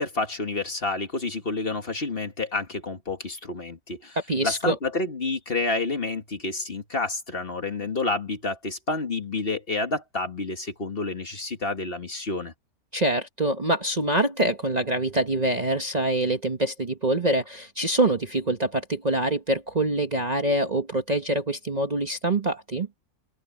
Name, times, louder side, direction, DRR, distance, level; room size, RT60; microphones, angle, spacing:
voice 1, 0.0-4.2 4.4-12.5, left 3 dB, 40° left, 1.8 m, -29 dB
voice 2, 4.3-4.8 12.9-22.9, right 1 dB, 30° right, 1.1 m, -25 dB
omnidirectional pair, 1.6 m